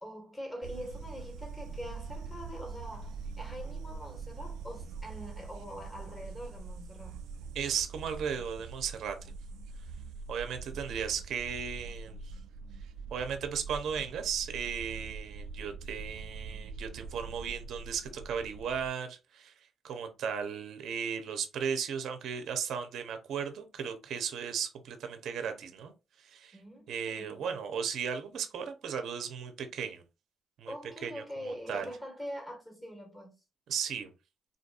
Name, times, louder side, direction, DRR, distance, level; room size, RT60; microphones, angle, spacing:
voice 1, 0.0-7.2 26.5-27.5 30.7-33.4, equal, 10° left, 1.7 m, -44 dB
sound 1, 0.6-18.9, right 4 dB, 85° right, 0.3 m, -43 dB
voice 2, 7.5-9.3 10.3-12.4 13.1-19.5 19.8-26.6 26.9-30.0 30.6-30.7 31.0-31.9 33.7-34.1, right 7 dB, 70° right, 0.8 m, -36 dB
4.0 x 2.6 x 2.5 m
cardioid pair, 90°, 0 cm